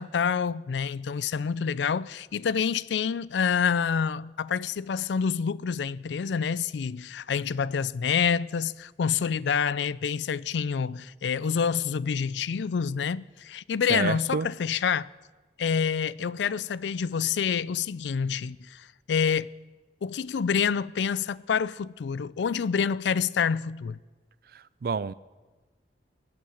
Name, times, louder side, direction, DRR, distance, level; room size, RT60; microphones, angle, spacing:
voice 1, 0.0-15.1 15.6-19.5 20.0-24.0, left 6 dB, 85° left, 0.4 m, -27 dB
voice 2, 13.9-14.5 24.5-25.1, right 5 dB, 55° right, 0.4 m, -29 dB
21.5 x 8.6 x 6.4 m
head